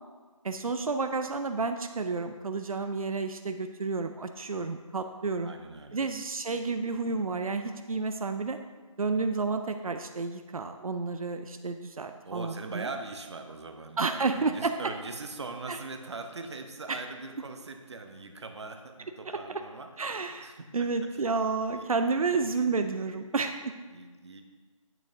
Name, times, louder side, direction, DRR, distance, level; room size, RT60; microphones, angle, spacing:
voice 1, 0.4-5.5 5.9-8.6 9.0-12.9 14.0-14.7 15.7-15.8 16.9-17.0 19.3-19.6 20.0-23.7, right 4 dB, 90° right, 7 dB, 0.5 m, -31 dB
voice 2, 5.4-6.1 12.2-19.9 20.4-20.9 21.7-21.9 22.3-22.4 23.9-24.4, right 3 dB, 55° right, 6 dB, 0.7 m, -41 dB
8.9 x 6.0 x 2.7 m, 1.4 s
figure-of-eight pair, 165°, 18 cm